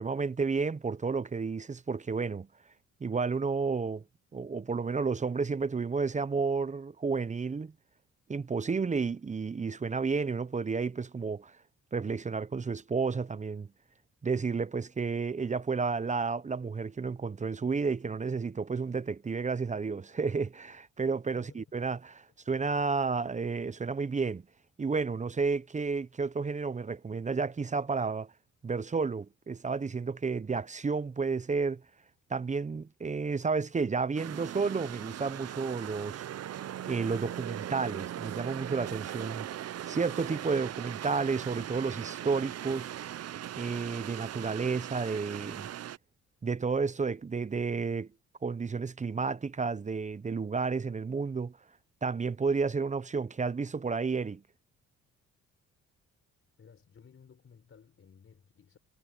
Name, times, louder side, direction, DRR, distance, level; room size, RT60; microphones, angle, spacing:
voice 1, 0.0-2.5 3.0-4.0 4.3-7.7 8.3-11.5 11.9-13.7 14.2-24.4 24.8-28.3 28.6-31.8 32.3-36.2 36.8-39.5 39.9-42.9 43.6-45.7 46.4-48.1 48.4-51.5 52.0-54.4, right 4 dB, 25° right, 0.8 m, -31 dB
voice 2, 21.4-21.8 56.6-58.8, left 6 dB, 45° left, 5.1 m, -57 dB
sound 1, 34.2-46.0, right 11 dB, 55° right, 0.8 m, -39 dB
cardioid pair, 90°, 30 cm